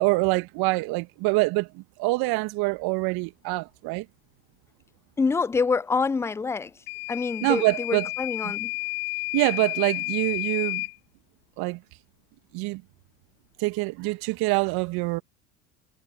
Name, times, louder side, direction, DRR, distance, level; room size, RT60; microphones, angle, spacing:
voice 1, 0.0-4.1 7.4-8.1 8.4-8.5 9.3-10.8 11.6-11.8 12.5-12.8 13.6-15.2, right 24 dB, 55° right, 2.0 m, -25 dB
voice 2, 5.2-6.7 7.1-8.7, left 4 dB, 5° left, 0.3 m, -26 dB
Microwave oven / Alarm, 6.9-11.0, left 28 dB, 65° left, 1.7 m, -31 dB
figure-of-eight pair, 70°, 44 cm